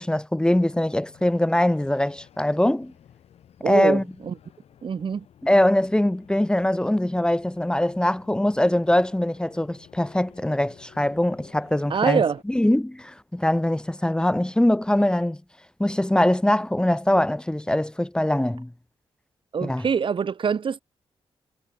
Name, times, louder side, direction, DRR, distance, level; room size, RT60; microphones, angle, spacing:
voice 1, 0.0-2.9 3.6-4.0 5.4-15.4 15.8-18.7 19.6-19.8, left 1 dB, 10° left, 1.2 m, -22 dB
sound 1, 0.6-12.4, left 9 dB, 85° left, 7.2 m, -53 dB
voice 2, 3.6-4.3 4.8-5.3 11.9-12.4 19.5-20.8, right 6 dB, 55° right, 1.9 m, -24 dB
cardioid pair, 95°, 10 cm